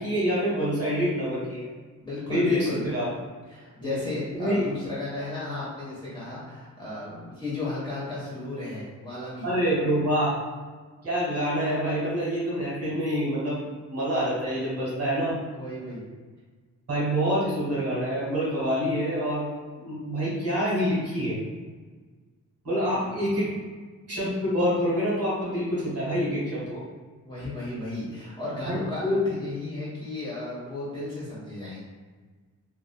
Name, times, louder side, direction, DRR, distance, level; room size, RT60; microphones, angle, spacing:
voice 1, 0.0-1.7 2.3-3.1 3.8-4.0 4.3-4.7 9.4-10.4 11.0-15.4 16.9-19.5 19.8-21.4 22.6-23.5 24.1-26.8 28.7-29.2, equal, 45° right, -7 dB, 1.2 m, -26 dB
voice 2, 2.0-2.9 3.5-9.5 15.5-16.0 22.9-23.0 27.2-31.8, left 2 dB, 15° left, -9 dB, 1.2 m, -34 dB
2.4 x 2.4 x 2.2 m, 1.4 s
cardioid pair, 75°, 35 cm